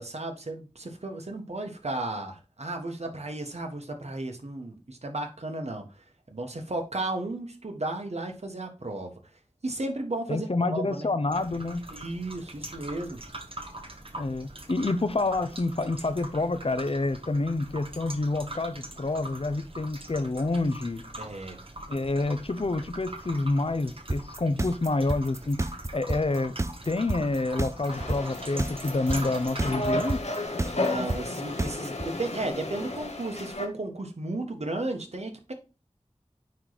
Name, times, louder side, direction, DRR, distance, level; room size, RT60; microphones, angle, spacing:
voice 1, 0.0-9.1 9.6-11.1 11.9-13.2 21.2-21.6 30.8-35.5, right 2 dB, 75° right, 1.5 m, -34 dB
voice 2, 10.3-11.8 14.2-21.0 21.9-25.6 25.9-26.5 26.9-30.2, left 2 dB, 55° left, 0.7 m, -28 dB
sound 1, 11.3-30.2, right 1 dB, 55° right, 1.4 m, -43 dB
sound 2, 24.1-32.1, right 2 dB, 25° right, 0.5 m, -29 dB
sound 3, 27.9-33.7, left 2 dB, 80° left, 1.2 m, -33 dB
9.2 x 3.3 x 4.0 m
wide cardioid pair, 45°, 11 cm